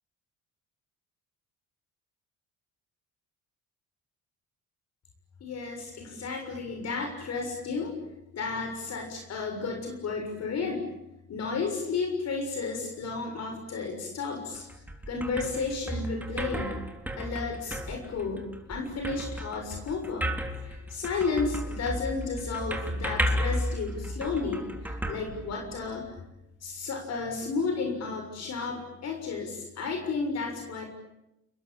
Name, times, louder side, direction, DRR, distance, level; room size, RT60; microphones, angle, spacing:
voice 1, 5.4-8.0 8.3-10.9 11.3-14.6 15.1-16.7 17.2-20.3 20.6-26.1 26.6-30.8, left 4 dB, 60° left, 3 dB, 6.9 m, -32 dB
sound 1, 14.5-26.0, equal, 5° right, 3.7 m, -34 dB
29.5 x 22.0 x 8.8 m, 0.87 s
cardioid pair, 90°, 30 cm